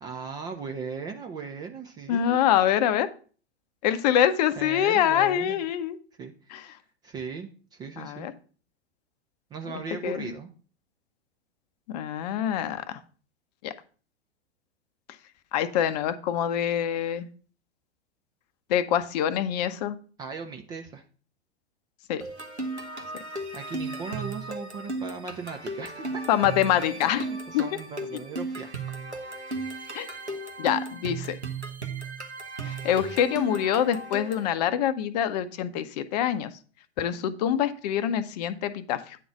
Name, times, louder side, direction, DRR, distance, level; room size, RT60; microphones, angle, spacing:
voice 1, 0.0-2.4 4.6-5.6 6.2-6.3 7.0-8.3 9.5-10.5 20.2-21.0 23.5-26.2 27.0-29.0, right 5 dB, 15° right, 4 dB, 0.4 m, -38 dB
voice 2, 2.1-3.1 3.8-6.0 6.5-6.6 8.0-8.3 10.0-10.3 11.9-13.0 13.6-13.7 15.5-17.3 18.7-20.0 22.1-22.2 26.3-27.3 27.5-27.6 29.9-30.1 30.6-31.4 32.6-36.5 37.0-39.2, left 10 dB, 40° left, 12 dB, 0.6 m, -25 dB
sound 1, 22.2-34.5, right 2 dB, 85° right, 1.3 m, -35 dB
9.2 x 3.9 x 5.7 m, 0.41 s
figure-of-eight pair, 95°, 33 cm